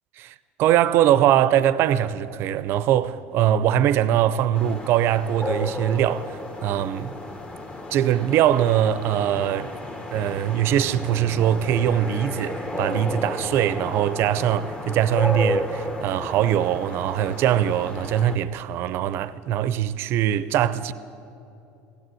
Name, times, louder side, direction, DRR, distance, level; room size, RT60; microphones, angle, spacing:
voice 1, 0.2-7.2 7.9-9.8 10.1-20.9, right 11 dB, 60° right, 0.6 m, -22 dB
sound 1, 4.5-18.4, left 1 dB, 20° left, 1.4 m, -32 dB
16.5 x 10.5 x 7.7 m
supercardioid pair, 100°, 5 cm